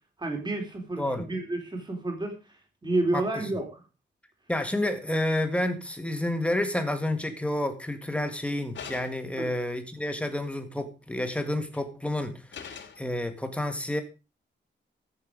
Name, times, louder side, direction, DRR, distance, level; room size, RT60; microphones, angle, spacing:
voice 1, 0.2-2.3 2.8-3.8 9.4-9.5, right 2 dB, 25° right, 3.5 m, -30 dB
voice 2, 4.5-12.3 13.0-14.0, left 1 dB, 5° left, 1.8 m, -29 dB
sound 1, 8.7-9.4 11.4-11.8 12.5-13.1, left 6 dB, 80° left, 2.4 m, -42 dB
14.0 x 8.0 x 5.1 m
wide cardioid pair, 150°, 19 cm